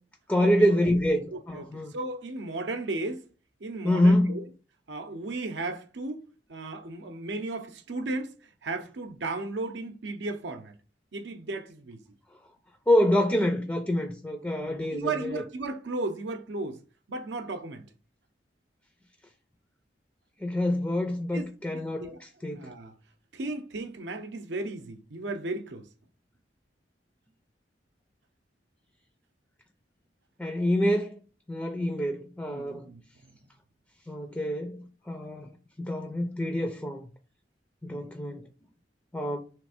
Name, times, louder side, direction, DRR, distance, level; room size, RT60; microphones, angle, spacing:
voice 1, 0.3-1.9 3.8-4.3 12.9-15.4 20.4-22.7 30.4-31.2 31.5-32.9 34.1-37.1 37.8-38.4 39.1-39.4, left 1 dB, 10° left, 0.5 m, -26 dB
voice 2, 1.1-3.3 3.6-4.4 4.9-6.2 6.5-8.4 8.6-10.7 11.1-12.0 14.5-16.8 17.1-17.8 21.3-21.5 21.7-22.2 22.5-22.9 23.3-25.9 32.4-33.0 37.9-38.1, right 2 dB, 75° right, 0.6 m, -35 dB
3.4 x 3.1 x 4.8 m
head